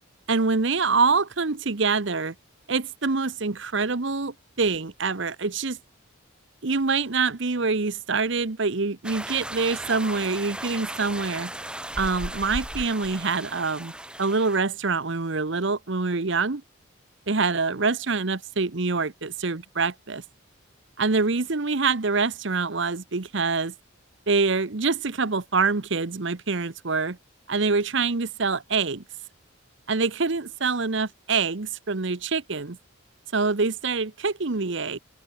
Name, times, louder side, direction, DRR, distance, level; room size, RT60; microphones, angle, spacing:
voice 1, 0.3-2.3 2.7-5.8 6.6-11.5 12.0-13.9 14.2-16.6 17.3-20.2 21.0-23.7 24.3-27.2 27.5-29.0 29.9-32.8 33.3-35.0, right 4 dB, 60° right, 1.0 m, -25 dB
sound 1, 9.0-14.6, right 1 dB, 5° right, 2.3 m, -36 dB
head